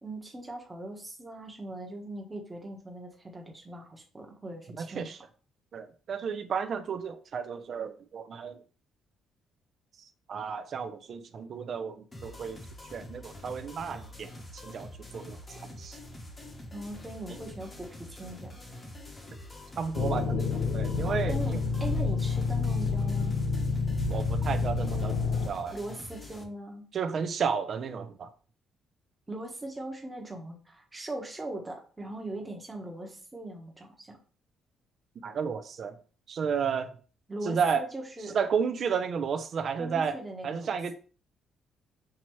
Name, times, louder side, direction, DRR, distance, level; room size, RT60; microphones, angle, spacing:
voice 1, 0.0-5.1 16.7-18.6 21.0-23.4 25.7-26.8 29.3-34.2 37.3-38.4 39.8-40.9, right 1 dB, 15° right, 0 dB, 1.1 m, -40 dB
voice 2, 4.8-5.2 5.7-8.6 10.0-12.7 12.9-16.0 17.3-17.4 19.8-21.6 24.1-25.8 26.9-28.3 35.2-36.0 36.3-36.9 37.4-37.9 38.3-40.2 40.4-40.9, right 6 dB, 45° right, 10 dB, 0.5 m, -32 dB
sound 1, 12.1-26.4, left 1 dB, 20° left, 0.9 m, -46 dB
sound 2, 19.9-25.5, left 4 dB, 65° left, 0.6 m, -28 dB
5.9 x 2.8 x 3.0 m, 0.39 s
cardioid pair, 140°, 0 cm